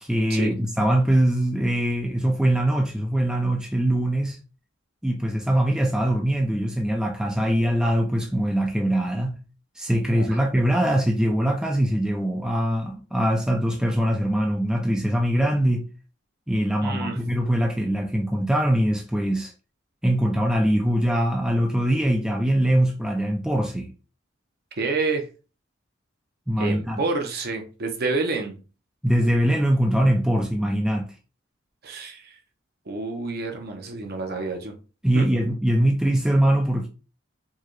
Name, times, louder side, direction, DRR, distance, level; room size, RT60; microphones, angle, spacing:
voice 1, 0.0-4.4 5.0-9.4 9.8-15.8 16.5-19.5 20.0-23.9 26.5-27.0 29.0-31.1 35.0-36.9, right 1 dB, 5° right, 0.4 m, -22 dB
voice 2, 10.1-10.6 16.8-17.2 24.8-25.3 26.6-28.6 31.8-32.4 32.9-34.8 35.1-35.3, right 3 dB, 50° right, 0.7 m, -29 dB
4.6 x 2.3 x 3.1 m
head